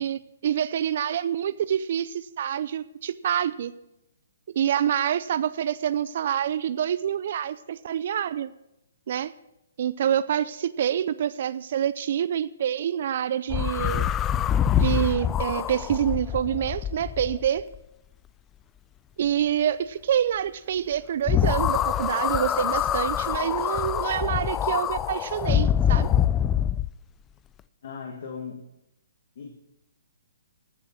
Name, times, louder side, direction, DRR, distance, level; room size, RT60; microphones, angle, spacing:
voice 1, 0.0-3.7 4.5-8.5 9.1-9.3 9.8-14.1 14.8-17.6 19.2-26.1, right 9 dB, 55° right, 17 dB, 0.4 m, -26 dB
sound 1, 13.5-17.8 21.3-26.9, left 10 dB, 20° left, 0.4 m, -25 dB
voice 2, 27.8-28.6 29.4-29.6, left 6 dB, 55° left, 1 dB, 2.0 m, -37 dB
14.5 x 6.8 x 6.1 m, 0.86 s
hypercardioid pair, 140°, 0 cm